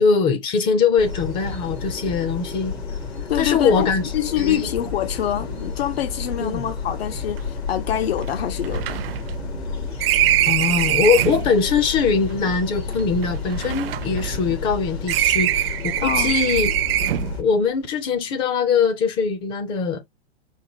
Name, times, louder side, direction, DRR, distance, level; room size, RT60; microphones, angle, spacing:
voice 1, 0.0-2.8 3.4-4.1 4.4-4.7 6.4-6.6 10.5-16.7 17.4-20.0, left 5 dB, 15° left, 0.4 m, -21 dB
sound 1, 1.0-17.4, left 5 dB, 85° left, 2.9 m, -31 dB
voice 2, 3.2-9.0 16.0-16.3, left 11 dB, 70° left, 0.7 m, -26 dB
sound 2, 7.4-7.5 7.7-7.8 8.2-11.5 12.3-14.7 15.1-17.4, right 14 dB, 65° right, 0.5 m, -23 dB
5.3 x 2.2 x 2.9 m
hypercardioid pair, 145°, 32 cm